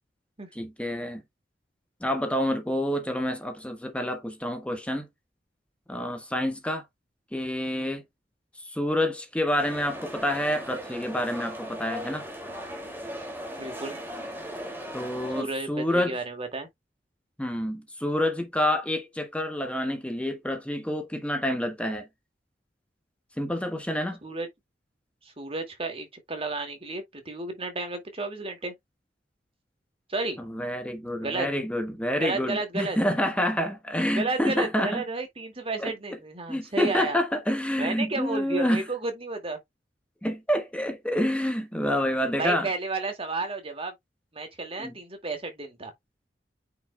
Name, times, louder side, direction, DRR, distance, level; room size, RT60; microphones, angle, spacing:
voice 1, 0.5-1.2 2.0-5.1 5.9-6.8 7.3-8.0 8.6-12.3 14.9-16.2 17.4-22.1 23.4-24.2 30.4-35.0 35.8-35.9 36.5-38.8 40.2-42.7 44.8-44.9, left 1 dB, 5° left, 1.3 m, -28 dB
sound 1, 9.6-15.4, equal, 15° right, 2.5 m, -38 dB
voice 2, 13.6-14.0 15.4-16.7 24.2-24.5 25.2-28.7 30.1-30.4 31.2-31.5 32.2-33.0 34.2-37.2 37.8-39.6 42.4-43.9 44.3-45.9, right 3 dB, 35° right, 2.2 m, -32 dB
9.1 x 5.6 x 2.3 m
head